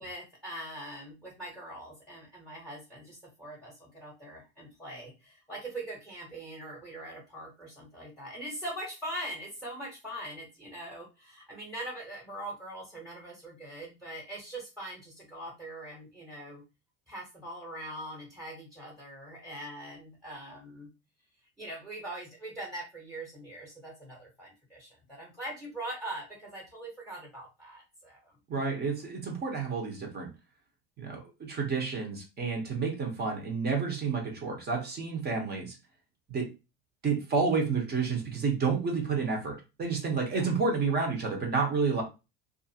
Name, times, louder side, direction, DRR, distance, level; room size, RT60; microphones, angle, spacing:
voice 1, 0.0-16.6 17.1-20.9 21.6-28.3 40.3-40.5, right 1 dB, ahead, -3 dB, 1.0 m, -42 dB
voice 2, 28.5-30.3 31.0-35.8 36.3-36.5 37.0-42.0, right 4 dB, 35° right, 3 dB, 0.9 m, -30 dB
2.5 x 2.4 x 2.8 m, 0.27 s
supercardioid pair, 115°, 29 cm